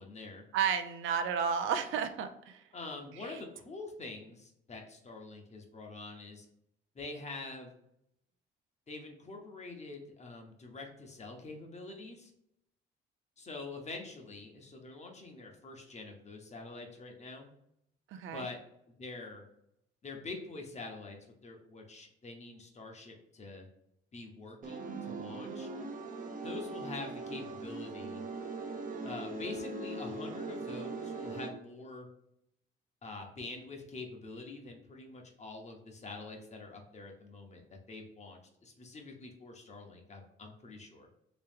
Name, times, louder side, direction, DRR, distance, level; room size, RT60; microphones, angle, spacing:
voice 1, 0.0-0.4 2.7-6.5 6.9-7.7 8.9-12.3 13.4-17.5 18.3-18.6 19.0-19.4 20.0-21.2 21.4-23.7 24.1-25.7 26.4-28.2 29.0-32.1 33.0-41.1, left 3 dB, 35° left, 2 dB, 1.0 m, -45 dB
voice 2, 0.5-2.6 3.2-3.4 18.1-18.5, right 7 dB, 80° right, 8 dB, 0.5 m, -32 dB
sound 1, 24.6-31.5, right 3 dB, 40° right, 0.7 m, -40 dB
3.3 x 3.0 x 3.5 m, 0.77 s
cardioid pair, 90°, 20 cm